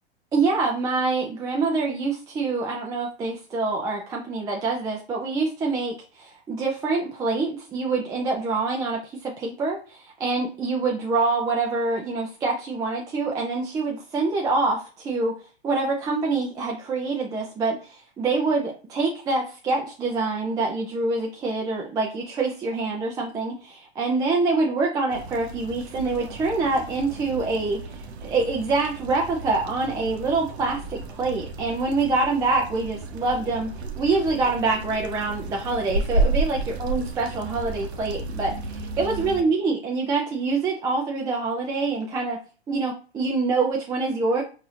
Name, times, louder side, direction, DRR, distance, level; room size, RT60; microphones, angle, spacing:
voice 1, 0.3-15.4 15.6-42.4 42.7-44.4, right 3 dB, 10° right, -1 dB, 0.4 m, -25 dB
sound 1, 25.1-39.4, right 2 dB, 75° right, 0.7 m, -32 dB
4.0 x 2.7 x 2.4 m, 0.36 s
hypercardioid pair, 125°, 33 cm